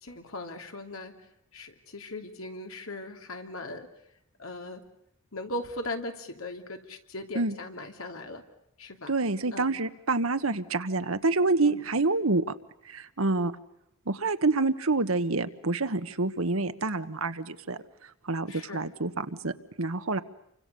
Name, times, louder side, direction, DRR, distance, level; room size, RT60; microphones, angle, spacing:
voice 1, 0.0-1.1 1.5-3.9 4.4-4.8 5.3-8.4 8.8-9.1 9.5-9.7 11.7-11.8 18.5-18.8, left 2 dB, 80° left, 4 dB, 3.0 m, -38 dB
voice 2, 9.1-12.4 12.8-13.5 14.1-20.2, right 3 dB, 90° right, 10 dB, 1.4 m, -27 dB
29.5 x 25.0 x 6.9 m, 0.75 s
head